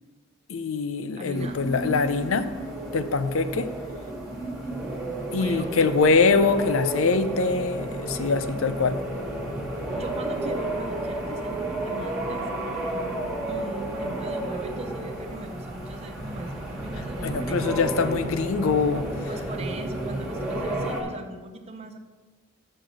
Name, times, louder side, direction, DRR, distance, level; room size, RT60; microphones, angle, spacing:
voice 1, 0.5-2.5 2.9-3.7 5.3-9.0 17.2-19.1, left 4 dB, 70° left, 11 dB, 0.5 m, -23 dB
voice 2, 1.1-1.6 5.3-6.0 9.9-12.4 13.4-17.9 19.3-22.0, right 1 dB, 30° right, 6 dB, 0.7 m, -39 dB
sound 1, 1.3-21.0, right 1 dB, ahead, 1.6 m, -32 dB
6.6 x 6.5 x 6.0 m, 1.3 s
head